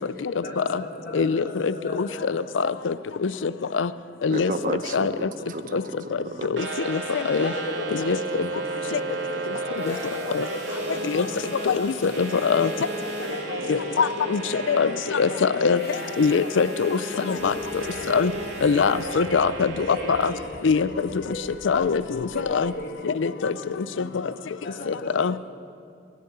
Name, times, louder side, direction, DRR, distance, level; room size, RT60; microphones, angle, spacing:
voice 1, 0.0-2.5 2.8-2.9 4.3-4.5 5.8-5.9 7.4-12.0 12.3-14.8 15.2-16.2 17.3-19.2 19.8-21.9 22.3-24.3 24.6-25.4, left 1 dB, 50° left, 2.0 m, -38 dB
voice 2, 1.1-2.9 3.2-3.9 4.2-4.5 4.9-5.1 5.7-5.8 6.5-7.5 8.1-8.2 10.3-10.4 11.1-11.2 11.7-12.7 13.7-15.8 16.2-17.0 17.3-17.5 18.1-18.3 18.6-20.3 20.6-20.9 21.6-22.2 22.5-22.7 23.0-23.5 24.9-25.3, left 5 dB, 85° left, 0.5 m, -23 dB
voice 3, 4.3-6.7, right 2 dB, 45° right, 0.9 m, -32 dB
sound 1, 6.6-20.3, right 2 dB, 75° right, 2.7 m, -33 dB
Water tap faucet / Sink (filling or washing) / Liquid, 9.7-13.5 14.0-14.1 14.4-14.5 15.6-19.7 20.3-20.4, left 1 dB, 15° left, 4.0 m, -51 dB
sound 2, 17.4-22.9, right 1 dB, 15° right, 0.8 m, -48 dB
22.0 x 7.6 x 8.1 m
head